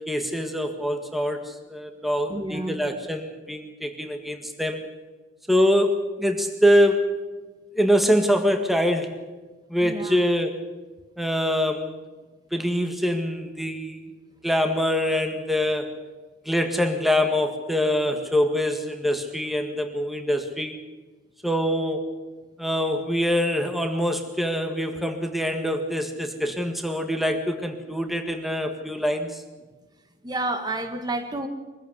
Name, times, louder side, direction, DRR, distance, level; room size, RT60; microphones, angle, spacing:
voice 1, 0.0-4.8 5.5-7.1 7.8-9.2 9.7-10.6 11.2-11.9 12.5-14.1 14.4-15.9 16.5-20.8 21.4-22.1 22.6-29.4, equal, ahead, 5 dB, 1.8 m, -24 dB
voice 2, 2.3-2.8 9.8-10.1 30.2-31.5, right 2 dB, 20° right, 6 dB, 1.7 m, -29 dB
23.5 x 15.5 x 8.1 m, 1.3 s
head